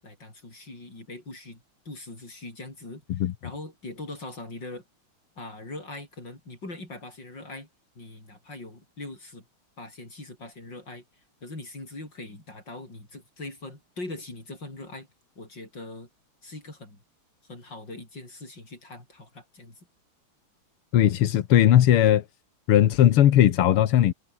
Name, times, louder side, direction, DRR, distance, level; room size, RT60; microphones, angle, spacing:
voice 1, 0.0-4.8 5.4-7.7 8.0-9.5 9.8-11.0 11.4-15.1 15.4-16.1 16.4-17.0 17.4-19.8, left 2 dB, 55° left, 8.8 m, -41 dB
voice 2, 20.9-22.2 22.7-24.1, left 11 dB, 90° left, 2.1 m, -18 dB
omnidirectional pair, 2.4 m